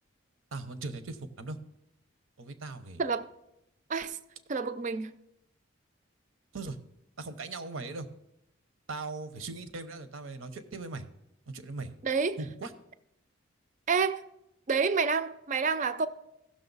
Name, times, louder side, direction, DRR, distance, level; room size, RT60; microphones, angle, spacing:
voice 1, 0.5-1.6 2.4-3.0 6.5-6.8 7.2-8.1 8.9-11.1 11.5-12.0 12.4-12.7, right 3 dB, 75° right, 0.8 m, -39 dB
voice 2, 4.5-5.1 12.0-12.4 13.9-14.2 14.7-16.1, right 5 dB, 35° right, 0.4 m, -28 dB
16.0 x 6.5 x 4.0 m
head